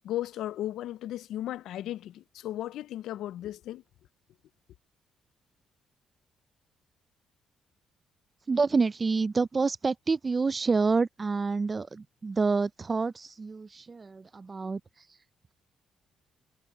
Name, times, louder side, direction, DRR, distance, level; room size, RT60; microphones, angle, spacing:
voice 1, 0.0-3.8, left 13 dB, 80° left, 0.4 m, -35 dB
voice 2, 8.5-14.8, right 4 dB, 30° right, 0.4 m, -28 dB
cardioid pair, 90°, 0 cm